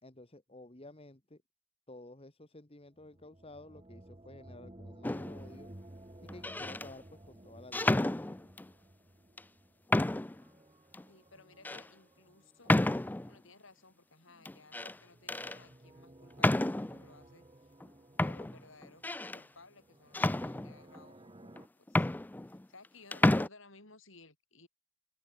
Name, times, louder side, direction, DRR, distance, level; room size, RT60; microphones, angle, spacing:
voice 1, 0.0-1.4 1.9-5.7 6.2-8.4, left 2 dB, 25° left, 1.5 m, -52 dB
sound 1, 3.0-13.7 14.9-21.7, right 1 dB, 25° right, 1.3 m, -56 dB
sound 2, 5.0-5.5 6.3-6.9 7.7-8.7 9.4-9.5 9.9-10.4 10.9-11.0 11.6-11.8 12.7-13.3 14.4-14.9 15.3-15.6 16.4-17.0 17.8-17.9 18.2-19.4 20.1-21.0 21.6-21.7 21.9-22.9 23.1-23.5, left 1 dB, 10° left, 0.3 m, -30 dB
voice 2, 11.1-12.8 13.3-17.7 18.2-19.1 19.3-22.1 22.5-24.7, left 3 dB, 60° left, 6.7 m, -58 dB
open air
head